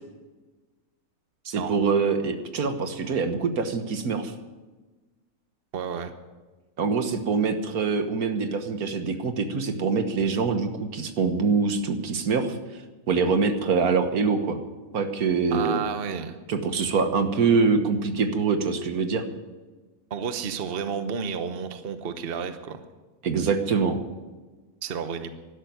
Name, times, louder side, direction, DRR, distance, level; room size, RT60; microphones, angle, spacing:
voice 1, 1.4-4.3 6.8-12.8 13.1-14.6 14.9-15.8 16.5-19.2 23.2-24.0, right 4 dB, 80° right, 7 dB, 1.7 m, -24 dB
voice 2, 5.7-6.1 15.5-16.4 20.1-22.8 24.8-25.3, right 6 dB, 45° right, 9 dB, 1.1 m, -31 dB
12.5 x 11.5 x 9.3 m, 1.3 s
omnidirectional pair, 1.5 m